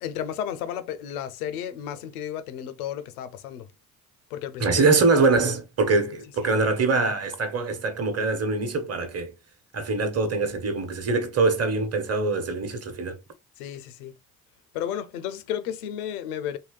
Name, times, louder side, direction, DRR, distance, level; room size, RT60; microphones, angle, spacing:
voice 1, 0.0-3.7 4.3-4.7 6.4-6.6 13.6-14.2 14.7-16.6, left 10 dB, 85° left, 0.5 m, -33 dB
voice 2, 4.6-9.3 9.7-13.2, right 3 dB, 35° right, 1.0 m, -23 dB
3.1 x 2.7 x 3.1 m
hypercardioid pair, 45°, 43 cm